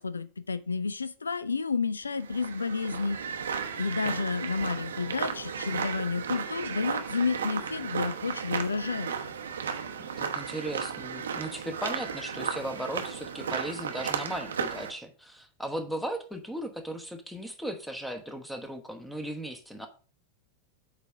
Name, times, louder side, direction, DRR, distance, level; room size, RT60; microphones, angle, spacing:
voice 1, 0.0-3.2 3.8-9.1, left 4 dB, 75° left, 17 dB, 0.4 m, -30 dB
sound 1, 2.2-14.9, right 6 dB, 70° right, 0.8 m, -34 dB
voice 2, 10.0-19.9, right 1 dB, ahead, 6 dB, 1.1 m, -37 dB
8.2 x 3.4 x 5.7 m, 0.38 s
figure-of-eight pair, 90°, 0 cm